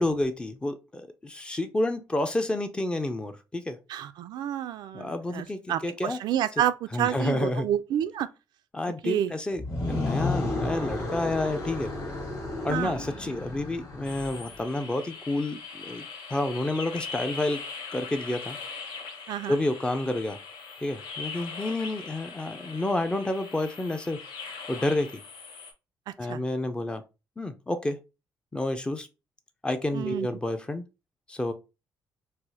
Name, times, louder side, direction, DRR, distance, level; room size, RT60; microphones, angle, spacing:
voice 1, 0.0-3.8 4.9-6.2 6.9-7.7 8.7-11.9 12.6-17.6 17.9-18.6 19.5-20.4 20.8-24.2 24.7-25.2 26.2-27.0 27.4-28.0 28.5-29.1 29.6-30.8 31.3-31.5, left 2 dB, 15° left, 0.4 m, -29 dB
voice 2, 3.9-8.3 9.0-9.3 12.7-13.0 19.3-19.6 26.3-26.4 29.9-30.3, right 11 dB, 70° right, 0.4 m, -29 dB
sound 1, 9.6-14.6, left 2 dB, 35° left, 1.4 m, -32 dB
sound 2, 14.0-25.7, left 5 dB, 80° left, 0.9 m, -41 dB
4.6 x 2.0 x 2.7 m
cardioid pair, 145°, 7 cm